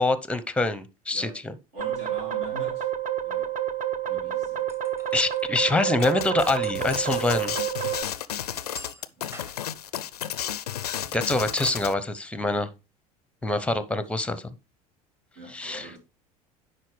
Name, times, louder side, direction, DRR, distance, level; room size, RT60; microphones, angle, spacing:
voice 1, 0.0-1.3 5.1-7.6 10.8-12.7 13.4-14.4 15.5-15.8, left 2 dB, 5° left, 0.8 m, -25 dB
voice 2, 1.1-1.4 1.7-2.9 3.2-3.6 4.0-4.7 9.2-9.5 15.3-16.0, right 1 dB, 65° right, 3.3 m, -43 dB
sound 1, 1.8-8.0, right 11 dB, 40° right, 0.8 m, -29 dB
sound 2, 4.4-5.5 5.8-7.1 7.5-7.6 8.5-10.1, right 1 dB, 15° right, 1.2 m, -47 dB
sound 3, 6.0-11.9, left 10 dB, 90° left, 0.4 m, -33 dB
10.0 x 4.2 x 3.2 m
hypercardioid pair, 70°, 19 cm